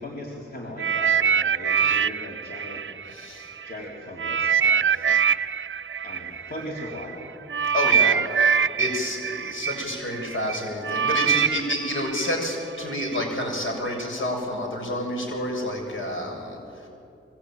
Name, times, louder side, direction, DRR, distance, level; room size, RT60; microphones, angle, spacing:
voice 1, 0.0-2.8 3.6-4.9 6.0-7.3, left 1 dB, 50° left, -2 dB, 4.0 m, -38 dB
sound 1, 0.8-3.7 4.2-13.2 13.9-14.0, right 7 dB, 65° right, 0.6 m, -24 dB
voice 2, 3.1-3.5 7.7-8.2 8.8-16.6 16.8-16.9, left 1 dB, 70° left, 1 dB, 7.5 m, -29 dB
25.5 x 24.0 x 9.2 m, 2.6 s
cardioid pair, 65°, 21 cm